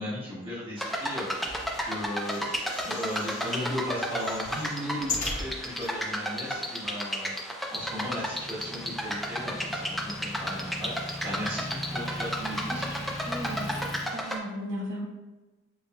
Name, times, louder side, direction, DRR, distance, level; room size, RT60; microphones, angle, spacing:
voice 1, 0.0-13.0, equal, 25° right, -9 dB, 1.2 m, -36 dB
sound 1, 0.8-14.4, equal, ahead, 0.3 m, -33 dB
sound 2, 1.4-3.6 4.0-5.9 6.5-6.6 6.8-6.9, left 3 dB, 40° left, 1.0 m, -38 dB
Motor vehicle (road) / Engine, 7.7-14.1, left 1 dB, 65° left, 1.4 m, -40 dB
voice 2, 12.4-15.0, right 1 dB, 65° right, -4 dB, 0.8 m, -37 dB
7.0 x 2.3 x 2.2 m, 1.1 s
head